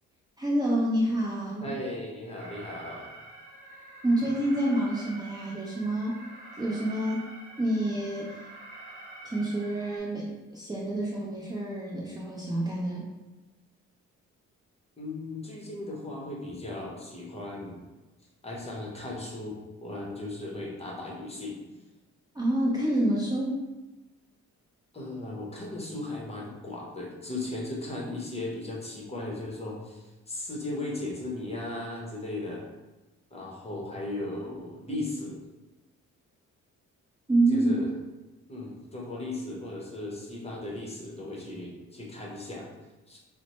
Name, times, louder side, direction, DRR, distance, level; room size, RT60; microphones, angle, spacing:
voice 1, 0.4-1.7 4.0-6.2 6.6-7.3 7.6-8.4 9.2-13.1 22.3-23.6 37.3-37.7, right 1 dB, 15° right, -6 dB, 0.6 m, -27 dB
voice 2, 1.6-3.1 15.0-17.8 18.4-21.5 24.9-32.6 33.3-35.4 37.5-37.9 38.5-42.7 43.1-43.2, left 2 dB, 20° left, -3 dB, 0.9 m, -37 dB
Alarm, 2.4-10.0, right 2 dB, 65° right, 0.8 m, -47 dB
4.2 x 2.1 x 3.0 m, 1.1 s
cardioid pair, 90°, 30 cm